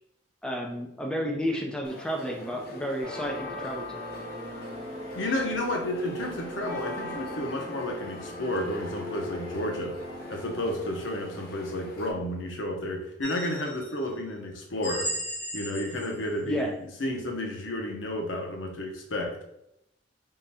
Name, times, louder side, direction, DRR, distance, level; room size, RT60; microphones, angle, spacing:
voice 1, 0.4-4.0 16.4-16.7, equal, 5° left, 0 dB, 0.5 m, -31 dB
sound 1, 1.8-12.1, left 2 dB, 55° left, 0.6 m, -43 dB
sound 2, 3.0-12.2, left 1 dB, 35° right, 0.7 m, -40 dB
voice 2, 5.1-10.0 10.3-15.1 15.5-16.7 17.0-19.4, left 1 dB, 90° left, 1 dB, 0.8 m, -31 dB
sound 3, 13.2-14.0 14.8-16.3, equal, 40° left, 1.3 m, -35 dB
3.7 x 2.2 x 4.2 m, 0.80 s
head